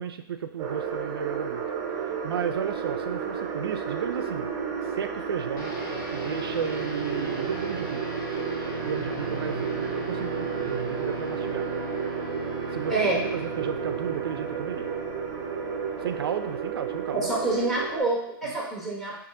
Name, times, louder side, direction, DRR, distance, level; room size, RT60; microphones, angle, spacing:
voice 1, 0.0-1.6 2.2-4.5 4.8-5.7 6.1-8.0 8.8-11.7 12.7-14.9 16.0-17.3 18.4-18.5, right 8 dB, 90° right, 9 dB, 0.4 m, -33 dB
sound 1, 0.6-18.0, right 7 dB, 25° right, 0.6 m, -32 dB
sound 2, 5.6-17.3, left 1 dB, 60° left, 0.8 m, -39 dB
voice 2, 17.1-19.2, right 2 dB, ahead, -4 dB, 1.0 m, -27 dB
4.9 x 2.5 x 2.6 m, 0.71 s
hypercardioid pair, 140°, 12 cm